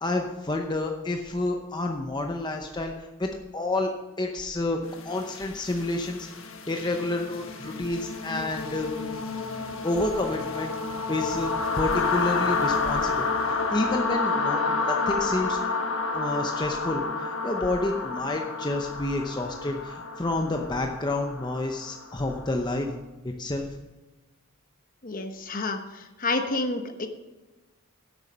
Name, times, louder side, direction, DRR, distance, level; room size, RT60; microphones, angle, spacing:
voice 1, 0.0-3.9 4.2-6.3 6.7-8.9 9.8-10.7 11.1-15.6 16.1-22.9 23.2-23.7, left 2 dB, 20° left, 3 dB, 0.7 m, -29 dB
sound 1, 5.0-22.8, left 4 dB, 65° left, 1.4 m, -30 dB
voice 2, 25.0-27.1, left 2 dB, 40° left, 7 dB, 1.0 m, -29 dB
11.0 x 8.1 x 5.6 m, 1.1 s
head